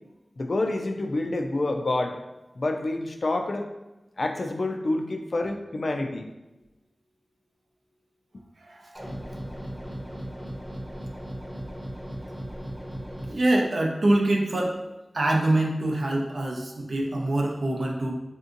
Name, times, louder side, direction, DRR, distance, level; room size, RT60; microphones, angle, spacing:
voice 1, 0.4-2.2 2.6-3.7 4.2-6.3, left 2 dB, 65° left, 5 dB, 0.3 m, -28 dB
sound 1, 9.0-13.3, equal, 5° right, 0.7 m, -37 dB
voice 2, 13.3-14.8 15.1-18.1, right 1 dB, 75° right, 0 dB, 0.5 m, -24 dB
3.5 x 2.6 x 2.5 m, 1.0 s
cardioid pair, 40°, 0 cm